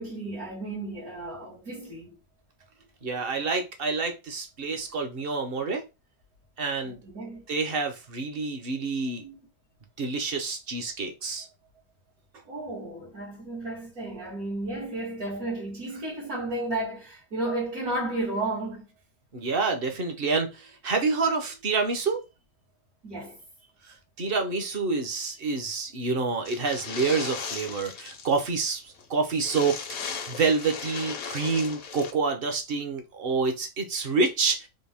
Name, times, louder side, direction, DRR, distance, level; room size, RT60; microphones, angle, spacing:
voice 1, 0.0-2.2 6.8-7.4 9.2-9.4 12.5-18.9 23.0-23.4, right 2 dB, 75° right, 2.2 m, -33 dB
voice 2, 3.0-5.8 6.6-7.0 7.5-9.2 10.0-11.5 19.3-22.2 23.8-34.7, right 4 dB, 45° right, 0.9 m, -28 dB
sound 1, 26.4-28.4 28.6-28.7 29.0-29.1 29.4-32.1, left 6 dB, 70° left, 1.2 m, -37 dB
4.4 x 2.8 x 3.4 m
omnidirectional pair, 1.5 m